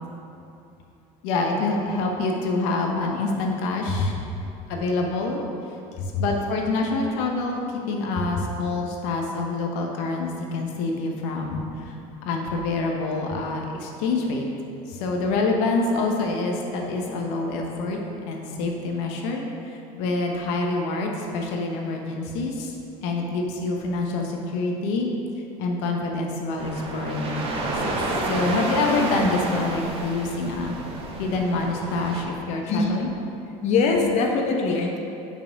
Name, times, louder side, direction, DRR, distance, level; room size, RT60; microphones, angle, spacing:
voice 1, 1.2-4.1 4.7-5.4 6.2-12.0 12.2-14.5 14.9-18.0 18.3-25.1 25.6-28.0 28.3-30.8 31.2-33.1, left 3 dB, 80° left, 1 dB, 1.0 m, -26 dB
sound 1, 26.6-32.2, right 2 dB, 40° right, 1.0 m, -30 dB
voice 2, 33.6-35.0, left 4 dB, 50° left, 1 dB, 1.0 m, -22 dB
5.6 x 4.8 x 5.9 m, 2.8 s
cardioid pair, 120°, 14 cm